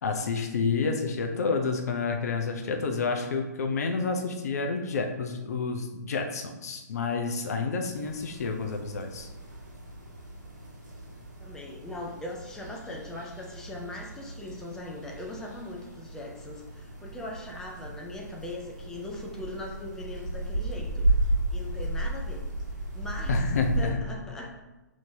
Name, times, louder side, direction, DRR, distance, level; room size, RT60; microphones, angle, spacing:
voice 1, 0.0-9.3 23.3-24.0, left 4 dB, 60° left, 4 dB, 0.6 m, -29 dB
sound 1, 7.9-23.8, right 2 dB, 90° right, 1.4 m, -34 dB
voice 2, 11.4-22.4 22.9-23.4 23.8-24.6, left 1 dB, 5° left, -1 dB, 0.5 m, -40 dB
5.8 x 2.8 x 2.7 m, 1.0 s
figure-of-eight pair, 130°, 10 cm